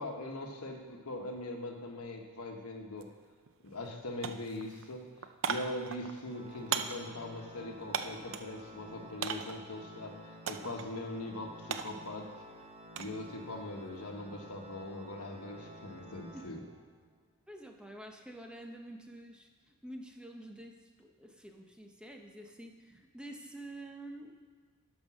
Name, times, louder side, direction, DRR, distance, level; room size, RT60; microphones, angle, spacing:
voice 1, 0.0-3.1 3.6-5.1 5.5-12.3 13.0-16.6, left 1 dB, 80° left, 3 dB, 1.3 m, -41 dB
sound 1, 3.0-3.1 3.5-4.0 4.2-8.6 9.2-9.7 10.5-10.9 11.2-13.2 13.5-14.0, right 7 dB, 60° right, 0.5 m, -38 dB
Organ, 6.2-17.1, equal, 30° right, 1.1 m, -51 dB
voice 2, 17.5-24.4, right 1 dB, 5° right, 3 dB, 0.7 m, -48 dB
11.5 x 5.2 x 6.2 m, 1.5 s
head